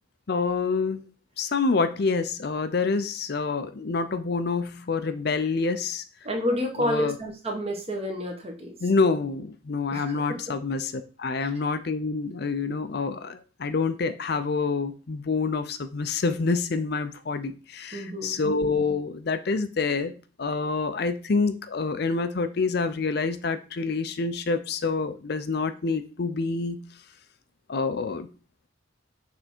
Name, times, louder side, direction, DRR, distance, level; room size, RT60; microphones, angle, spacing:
voice 1, 0.3-1.0 1.4-6.0 6.8-7.2 8.8-20.1 20.4-26.8 27.7-28.3, left 4 dB, 50° left, 10 dB, 0.5 m, -27 dB
voice 2, 6.2-8.7 9.9-10.2 11.4-11.5 17.9-18.4, left 1 dB, 30° right, 2 dB, 1.3 m, -29 dB
6.7 x 3.6 x 4.4 m, 0.34 s
head